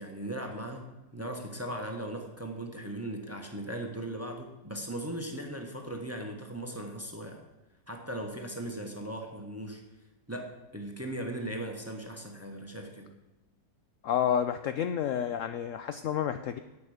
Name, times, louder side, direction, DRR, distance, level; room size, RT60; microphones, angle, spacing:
voice 1, 0.0-7.4 7.9-9.8 10.3-13.1, right 1 dB, 10° right, 3 dB, 0.8 m, -38 dB
voice 2, 14.0-16.6, left 9 dB, 80° left, 9 dB, 0.7 m, -30 dB
11.0 x 8.6 x 4.9 m, 1.0 s
omnidirectional pair, 1.9 m